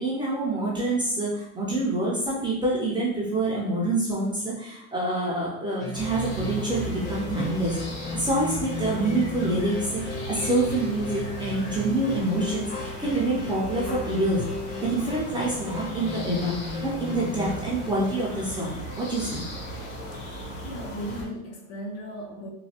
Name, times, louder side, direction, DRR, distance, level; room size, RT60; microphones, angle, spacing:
voice 1, 0.0-14.4 14.8-19.4, right 2 dB, 10° right, -6 dB, 0.5 m, -27 dB
sound 1, 5.8-18.3, left 1 dB, 90° left, 1.2 m, -36 dB
sound 2, 5.9-21.2, equal, 65° left, 1.0 m, -37 dB
voice 2, 19.8-22.5, equal, 40° left, 1 dB, 0.5 m, -38 dB
3.1 x 2.1 x 2.8 m, 0.83 s
supercardioid pair, 125°, 42 cm